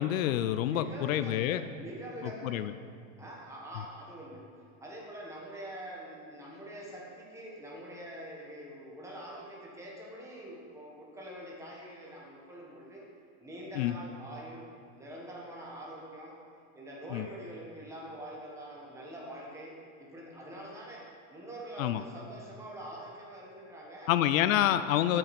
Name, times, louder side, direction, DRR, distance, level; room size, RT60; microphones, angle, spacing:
voice 1, 0.0-1.6 2.4-2.7 13.8-13.9 17.1-17.2 21.8-22.0 24.1-25.2, left 12 dB, 80° left, 12 dB, 0.6 m, -27 dB
voice 2, 0.6-2.7 3.2-4.5 4.8-13.1 13.4-14.7 14.9-16.4 16.7-24.1, right 1 dB, 5° right, -3 dB, 1.4 m, -45 dB
13.5 x 6.6 x 4.3 m, 2.4 s
supercardioid pair, 170°, 39 cm